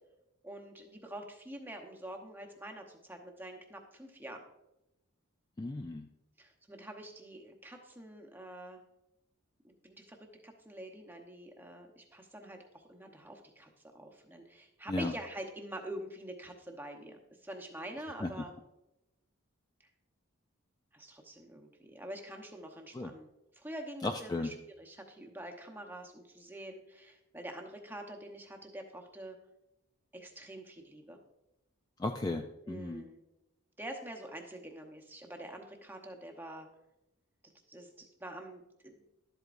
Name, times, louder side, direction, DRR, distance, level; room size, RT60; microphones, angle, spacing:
voice 1, 0.4-4.4 6.4-8.8 9.6-10.2 10.4-13.7 13.9-18.5 20.9-23.3 23.5-29.4 30.1-31.2 32.6-33.2 33.8-36.7 37.7-38.9, right 1 dB, 10° right, 3 dB, 0.9 m, -46 dB
voice 2, 5.6-6.1 14.9-15.1 18.2-18.3 22.9-23.1 24.0-24.5 32.0-33.0, left 2 dB, 20° left, 4 dB, 0.3 m, -35 dB
12.0 x 8.0 x 2.5 m, 0.93 s
head